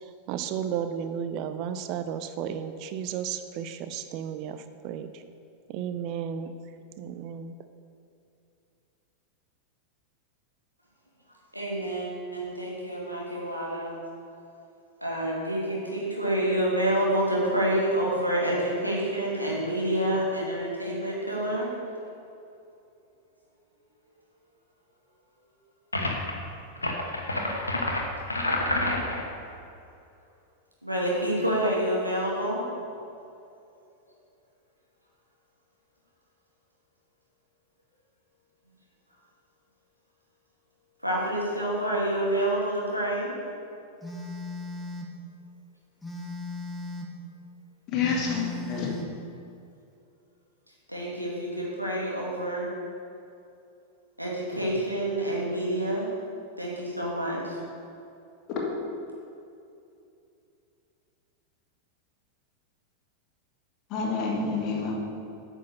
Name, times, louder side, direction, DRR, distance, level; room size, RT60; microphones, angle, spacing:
voice 1, 0.3-5.2 5.7-6.5 7.0-7.5, right 8 dB, 40° right, 10 dB, 0.5 m, -33 dB
voice 2, 11.5-14.0 15.0-21.7 30.8-32.6 41.0-43.3 50.9-52.7 54.2-56.1 56.6-57.6, right 1 dB, 90° right, -4 dB, 2.3 m, -28 dB
sound 1, 25.9-26.3 26.8-29.3, left 1 dB, 80° left, 1.1 m, -28 dB
Telephone, 44.0-45.2 46.0-47.2 48.0-49.2, left 2 dB, 5° left, 1.2 m, -37 dB
voice 3, 47.9-48.9 63.9-65.0, left 4 dB, 35° left, -2 dB, 2.2 m, -28 dB
9.3 x 6.3 x 6.4 m, 2.6 s
figure-of-eight pair, 90°, 0 cm